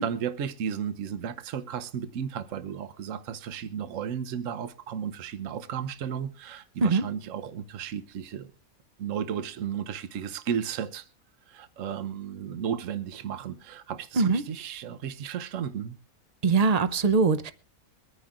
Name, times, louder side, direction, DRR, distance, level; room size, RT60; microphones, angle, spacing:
voice 1, 0.0-8.5 9.0-11.1 11.5-16.0, right 8 dB, 65° right, 1.1 m, -34 dB
voice 2, 16.4-17.5, right 4 dB, 45° right, 0.5 m, -22 dB
24.0 x 9.6 x 2.5 m
omnidirectional pair, 1.5 m